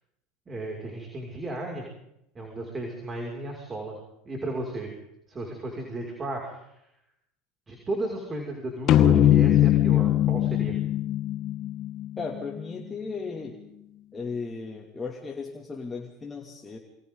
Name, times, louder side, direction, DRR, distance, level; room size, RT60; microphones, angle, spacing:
voice 1, 0.5-1.8 2.3-4.0 4.2-4.9 5.3-6.7 7.7-10.8, right 2 dB, 25° right, 0 dB, 6.3 m, -34 dB
sound 1, 8.9-12.4, left 12 dB, 50° left, 1.4 m, -21 dB
voice 2, 12.2-13.6 14.1-16.8, left 4 dB, 20° left, 1 dB, 2.7 m, -36 dB
28.0 x 25.5 x 4.0 m, 0.81 s
hypercardioid pair, 80°, 0 cm